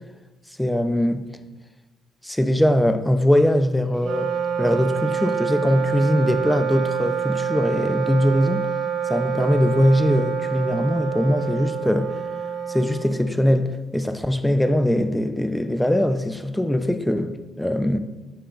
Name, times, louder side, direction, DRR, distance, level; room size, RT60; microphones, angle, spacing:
voice 1, 0.6-1.3 2.2-8.7 9.1-12.2 12.7-18.0, equal, 5° left, 0.4 m, -21 dB
Wind instrument woodwind instrument, 3.9-13.5, right 7 dB, 80° right, 1.0 m, -27 dB
7.4 x 6.3 x 2.4 m
cardioid pair, 90°, 0 cm